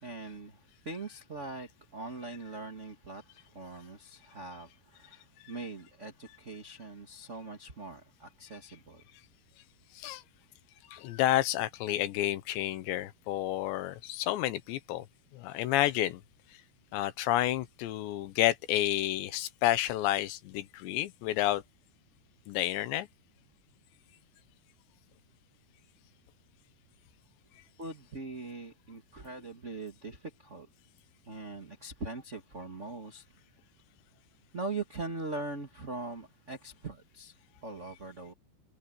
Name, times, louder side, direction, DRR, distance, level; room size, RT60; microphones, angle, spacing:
voice 1, 0.0-9.0 27.8-30.7 31.2-33.3 34.5-37.3 37.6-38.3, right 3 dB, 30° right, 1.3 m, -41 dB
voice 2, 10.9-15.1 15.3-16.2 16.9-21.6 22.5-23.1, left 14 dB, 85° left, 3.3 m, -30 dB
omnidirectional pair, 5.0 m